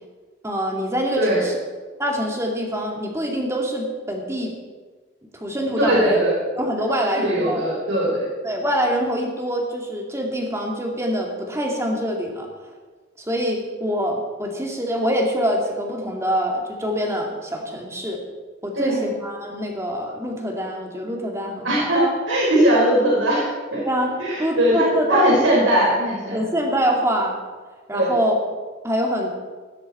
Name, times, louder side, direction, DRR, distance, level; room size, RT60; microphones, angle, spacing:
voice 1, 0.4-1.6 2.0-4.5 5.2-6.2 6.6-7.6 8.4-12.5 13.2-18.2 18.6-21.9 23.8-24.1 24.4-25.3 26.3-27.4 27.9-28.4 28.8-29.3, equal, 15° right, 1 dB, 2.1 m, -25 dB
voice 2, 5.8-6.3 7.1-8.3 18.7-19.0 21.6-23.5 23.7-23.8 24.2-26.4 27.9-28.1, right 1 dB, 80° right, -4 dB, 4.5 m, -19 dB
16.0 x 12.5 x 4.3 m, 1.4 s
head